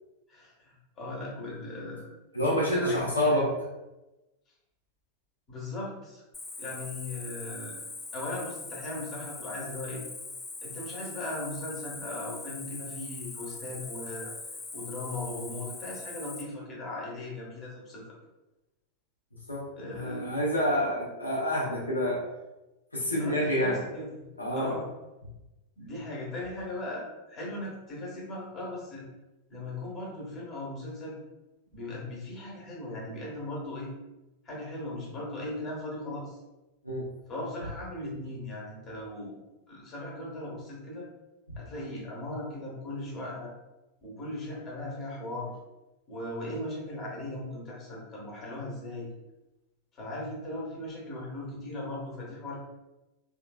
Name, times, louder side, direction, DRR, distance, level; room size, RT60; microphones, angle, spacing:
voice 1, 0.3-2.1 2.7-3.5 5.5-6.2 6.6-7.8 8.1-10.0 10.6-14.3 14.7-18.0 19.8-20.3 23.2-24.2 24.5-24.9 25.8-29.0 29.5-31.2 31.7-33.9 34.4-36.4 37.3-39.4 39.7-41.1 41.6-43.5 44.0-45.5 46.1-49.1 49.9-52.6, left 1 dB, 30° left, -4 dB, 1.3 m, -38 dB
voice 2, 2.3-3.5 19.5-19.6 19.9-22.2 22.9-23.8 24.4-24.7 36.8-37.1, equal, 85° left, -5 dB, 0.7 m, -27 dB
Cricket, 6.3-16.4, left 3 dB, 15° left, 0.4 m, -41 dB
3.3 x 3.1 x 2.3 m, 1.0 s
figure-of-eight pair, 90°, 0 cm